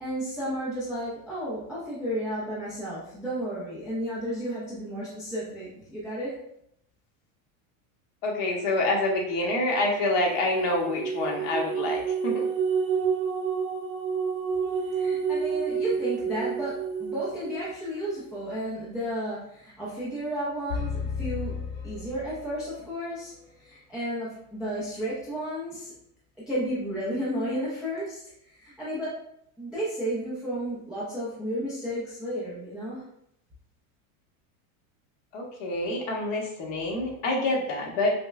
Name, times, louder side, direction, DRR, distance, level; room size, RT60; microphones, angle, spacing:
voice 1, 0.0-6.4 14.9-21.5 21.8-23.3 23.6-25.9 26.4-29.1 29.6-33.0, equal, ahead, -10 dB, 0.3 m, -33 dB
voice 2, 8.2-12.5 35.3-38.1, left 2 dB, 45° left, -1 dB, 1.1 m, -27 dB
sound 1, 10.1-17.9, right 6 dB, 35° right, 0.7 m, -29 dB
sound 2, 20.7-22.8, left 5 dB, 75° left, 1.1 m, -33 dB
5.3 x 2.1 x 2.4 m, 0.75 s
supercardioid pair, 160°, 43 cm